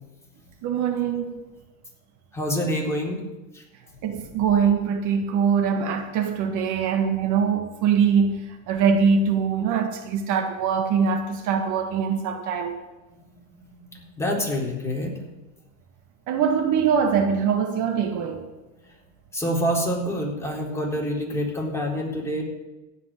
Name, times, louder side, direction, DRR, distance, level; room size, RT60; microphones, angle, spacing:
voice 1, 0.6-1.4 4.0-12.8 16.3-18.5, right 6 dB, 50° right, 5 dB, 1.7 m, -23 dB
voice 2, 2.3-3.2 3.5-3.6 4.1-4.3 13.7-15.1 19.3-22.4, equal, 5° left, -3 dB, 3.9 m, -27 dB
15.5 x 5.9 x 9.6 m, 1.1 s
supercardioid pair, 110°, 37 cm